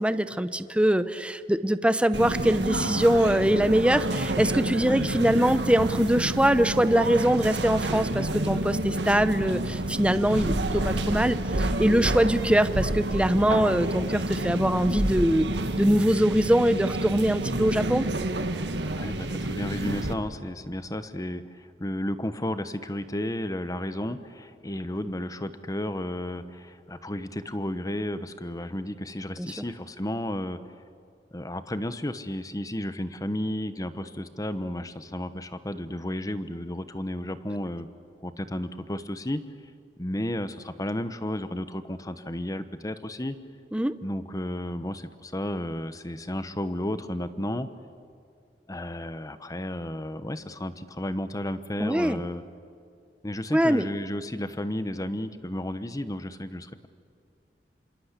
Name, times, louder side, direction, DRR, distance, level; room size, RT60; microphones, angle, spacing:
voice 1, 0.0-15.5 15.8-18.1 29.4-29.5 43.7-43.9 51.8-52.2 53.5-53.9, right 1 dB, 5° right, 12 dB, 0.7 m, -23 dB
sound 1, 2.1-20.1, right 1 dB, 80° right, 1.6 m, -29 dB
voice 2, 18.9-30.6 31.3-37.9 38.2-39.4 40.0-43.4 44.0-47.7 48.7-52.4 53.2-56.9, left 1 dB, 20° left, 12 dB, 1.1 m, -33 dB
27.0 x 26.5 x 8.3 m, 2.3 s
head